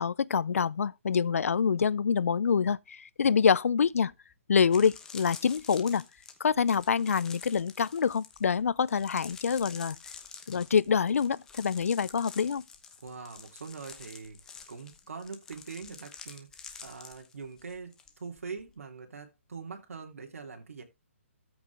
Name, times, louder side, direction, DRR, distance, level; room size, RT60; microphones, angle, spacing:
voice 1, 0.0-4.1 4.5-6.0 6.4-10.0 10.5-12.6, left 6 dB, 80° left, 0.5 m, -26 dB
sound 1, 4.1-4.2 4.6-18.1 18.4-18.7, left 6 dB, 10° left, 1.0 m, -48 dB
voice 2, 13.0-14.4 14.7-20.8, right 5 dB, 80° right, 3.1 m, -43 dB
14.0 x 6.0 x 3.5 m
hypercardioid pair, 170°, 8 cm